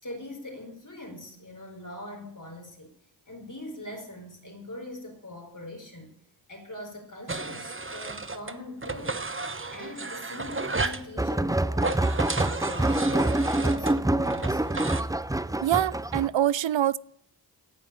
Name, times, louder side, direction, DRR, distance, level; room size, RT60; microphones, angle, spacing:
voice 1, 0.0-2.9 3.3-6.1 6.5-9.2 9.7-14.9, left 1 dB, 40° left, 4.7 m, -42 dB
sound 1, 7.3-8.5 8.8-11.1 11.7-15.0, right 3 dB, 25° right, 1.0 m, -33 dB
sound 2, 11.2-16.3, right 1 dB, 10° right, 0.6 m, -26 dB
voice 2, 15.6-17.0, right 11 dB, 75° right, 0.5 m, -24 dB
17.0 x 6.1 x 8.7 m
cardioid pair, 45°, 46 cm